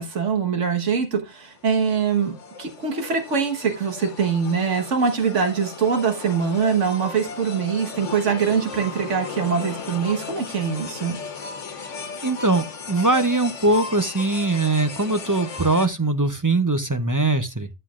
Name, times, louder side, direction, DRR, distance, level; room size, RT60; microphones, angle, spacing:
voice 1, 0.0-11.2, right 6 dB, 85° right, 1.7 m, -23 dB
sound 1, 1.4-15.9, left 5 dB, 85° left, 1.5 m, -36 dB
voice 2, 12.2-17.7, right 2 dB, 25° right, 0.5 m, -21 dB
11.5 x 7.7 x 2.4 m
omnidirectional pair, 1.2 m